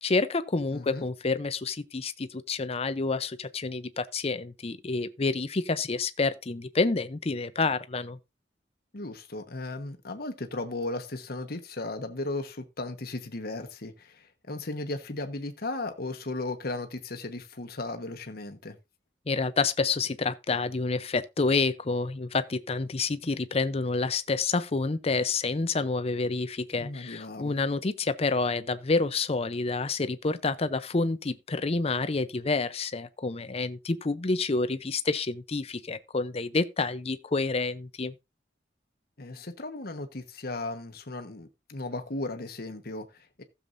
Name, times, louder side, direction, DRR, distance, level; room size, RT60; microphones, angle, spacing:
voice 1, 0.0-8.2 19.3-38.1, left 3 dB, 35° left, 0.6 m, -28 dB
voice 2, 0.7-1.1 8.9-18.8 26.8-27.6 39.2-43.4, left 2 dB, 60° left, 1.2 m, -36 dB
15.5 x 7.1 x 2.6 m
head